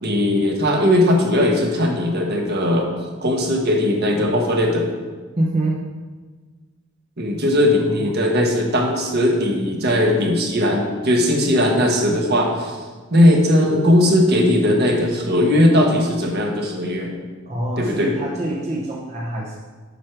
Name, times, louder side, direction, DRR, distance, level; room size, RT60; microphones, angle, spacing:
voice 1, 0.0-2.9 3.2-4.9 7.2-12.8 13.1-17.1 17.8-18.1, left 1 dB, 50° right, 1 dB, 1.4 m, -18 dB
voice 2, 5.4-5.8 7.7-8.1 17.5-19.6, right 1 dB, 35° right, -4 dB, 0.9 m, -25 dB
8.2 x 6.2 x 4.6 m, 1.4 s
head